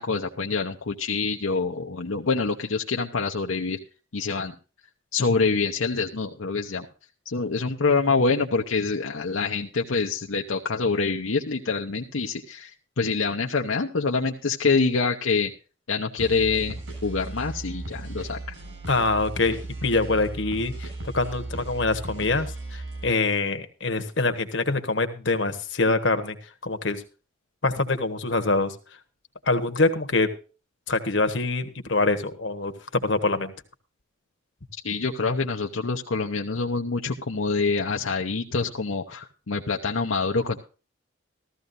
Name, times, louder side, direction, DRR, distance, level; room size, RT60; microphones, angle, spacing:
voice 1, 0.0-3.8 4.1-4.5 5.1-6.9 7.3-15.5 15.9-18.5 34.8-40.6, left 4 dB, 80° left, 2 dB, 0.8 m, -26 dB
sound 1, 16.2-23.1, right 2 dB, 70° right, 7.4 m, -36 dB
voice 2, 18.9-20.9 21.1-26.4 26.6-27.0 27.6-28.7 29.4-30.3 30.9-33.5, left 3 dB, 65° left, 8 dB, 1.3 m, -25 dB
15.0 x 14.0 x 2.6 m, 0.35 s
head